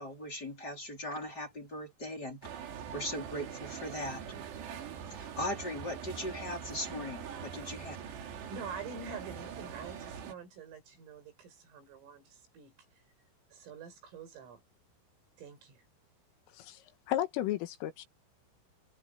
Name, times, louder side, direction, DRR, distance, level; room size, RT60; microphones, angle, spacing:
voice 1, 0.0-2.5 2.9-4.2 5.1-8.0, left 1 dB, 20° left, 4.8 m, -39 dB
sound 1, 2.4-10.3, right 8 dB, 65° right, 4.4 m, -43 dB
voice 2, 8.4-12.7 13.5-14.6 15.4-15.8, right 5 dB, 85° right, 8.9 m, -46 dB
voice 3, 16.5-18.1, left 13 dB, 90° left, 4.2 m, -34 dB
omnidirectional pair, 5.7 m